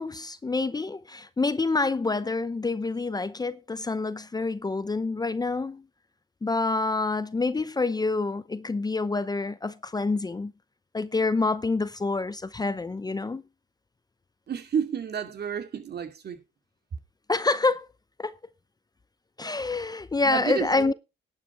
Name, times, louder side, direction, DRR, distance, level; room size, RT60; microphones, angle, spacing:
voice 1, 0.0-5.8 6.4-10.5 10.9-13.4 17.3-17.9 18.2-18.4 19.4-20.9, left 3 dB, 20° left, 0.7 m, -27 dB
voice 2, 14.5-16.4 20.2-20.9, right 7 dB, 55° right, 2.6 m, -31 dB
11.5 x 8.8 x 4.7 m
cardioid pair, 90°, 20 cm